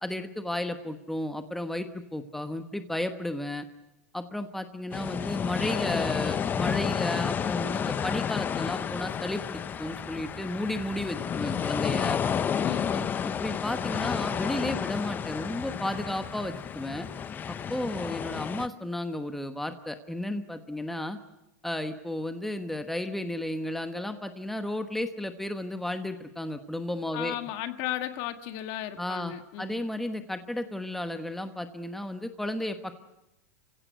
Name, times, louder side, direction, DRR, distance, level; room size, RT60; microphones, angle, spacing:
voice 1, 0.0-3.7 4.1-12.2 12.9-17.1 17.5-21.2 21.6-27.3 29.0-33.0, left 1 dB, 5° left, 8 dB, 1.2 m, -33 dB
sound 1, 4.9-18.7, left 7 dB, 25° left, 0.8 m, -31 dB
voice 2, 12.6-12.9 27.1-29.8, left 13 dB, 50° left, 9 dB, 1.7 m, -35 dB
29.0 x 16.0 x 8.2 m, 0.90 s
supercardioid pair, 130°, 8 cm